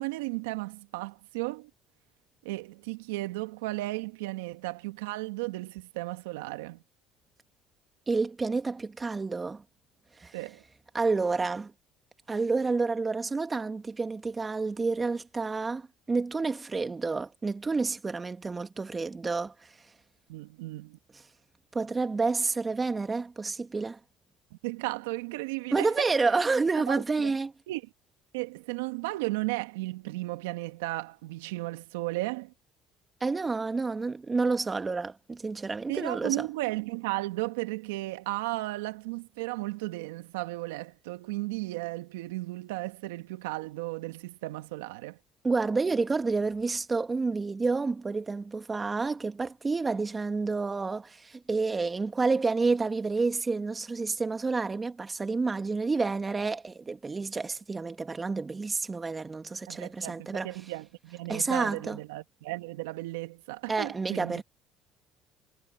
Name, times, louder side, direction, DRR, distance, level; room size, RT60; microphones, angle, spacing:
voice 1, 0.0-1.7 2.4-6.8 10.3-10.6 20.3-21.0 24.5-26.1 26.9-27.3 27.7-27.8 28.3-32.5 35.9-45.2 59.7-64.4, right 20 dB, 85° right, 1.9 m, -35 dB
voice 2, 8.1-9.6 10.2-10.4 10.9-11.7 12.3-19.5 21.7-24.0 25.7-27.5 33.2-36.5 45.4-60.5 61.3-62.0 63.7-64.4, right 4 dB, 25° right, 2.4 m, -29 dB
hypercardioid pair, 70°, 0 cm